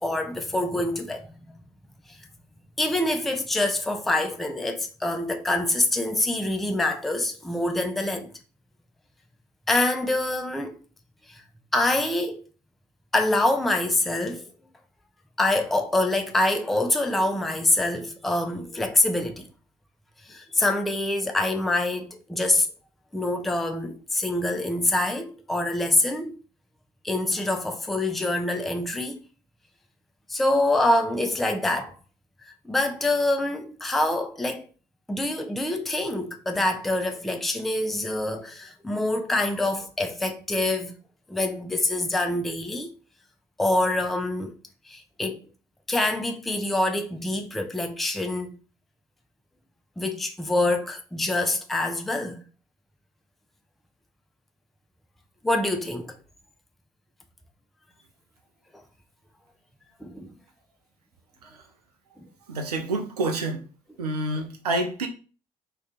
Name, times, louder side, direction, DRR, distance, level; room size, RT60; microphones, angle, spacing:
voice 1, 0.0-1.5 2.1-2.2 2.8-8.3 9.7-10.8 11.3-11.4 11.7-12.4 13.1-14.4 15.4-19.5 20.2-22.7 23.1-26.4 27.0-29.2 30.3-31.9 32.6-34.7 35.1-40.9 41.3-42.9 43.6-44.6 44.9-45.5 45.9-48.6 50.0-52.4 55.4-56.2 60.0-60.3 62.2-62.3, left 2 dB, ahead, 0.3 m, -25 dB
voice 2, 62.5-63.7 64.0-65.1, right 2 dB, 80° right, 0.5 m, -28 dB
2.5 x 2.2 x 3.6 m
figure-of-eight pair, 50°, 20 cm